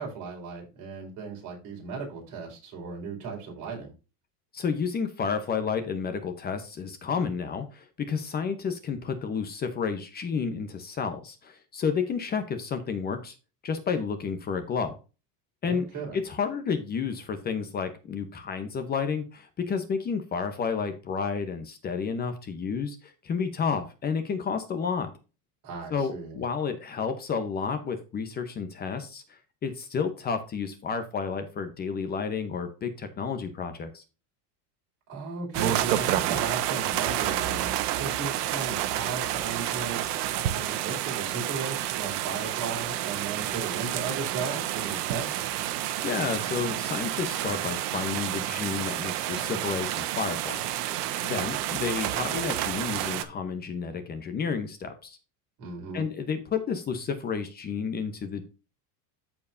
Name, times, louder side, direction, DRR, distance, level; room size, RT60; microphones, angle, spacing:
voice 1, 0.0-3.9 15.6-16.2 25.6-26.4 35.1-45.6 55.6-56.0, right 4 dB, 45° right, -1 dB, 4.9 m, -36 dB
voice 2, 4.5-13.3 13.6-15.0 15.6-15.9 16.1-25.1 25.9-34.0 46.0-55.2 55.9-58.5, left 6 dB, 20° left, 8 dB, 0.9 m, -31 dB
sound 1, 35.5-53.2, right 13 dB, 90° right, 1.2 m, -29 dB
14.0 x 4.7 x 2.7 m, 0.31 s
cardioid pair, 165°, 45 cm